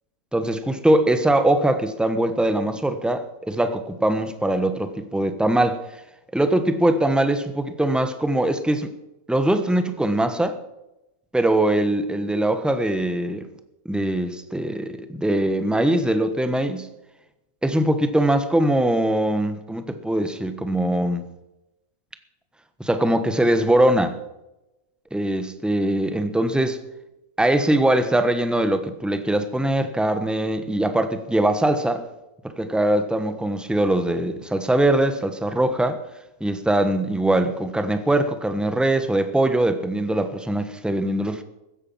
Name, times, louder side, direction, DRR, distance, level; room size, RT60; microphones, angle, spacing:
voice 1, 0.3-5.8 6.3-8.9 9.3-10.6 11.3-13.5 13.9-16.9 17.6-21.2 22.8-24.2 25.1-26.8 27.4-32.1 32.4-36.0 36.4-41.4, right 1 dB, ahead, 1.0 m, -22 dB
16.0 x 13.5 x 5.7 m
omnidirectional pair, 1.6 m